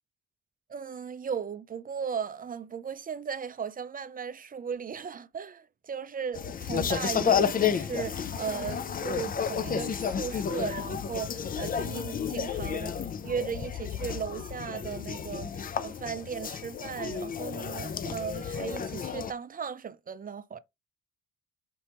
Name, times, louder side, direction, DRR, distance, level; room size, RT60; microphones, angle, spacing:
voice 1, 0.7-20.6, right 7 dB, 30° right, 0.4 m, -37 dB
sound 1, 6.3-19.3, left 7 dB, 30° left, 0.4 m, -31 dB
4.3 x 3.2 x 2.9 m
cardioid pair, 90°, 30 cm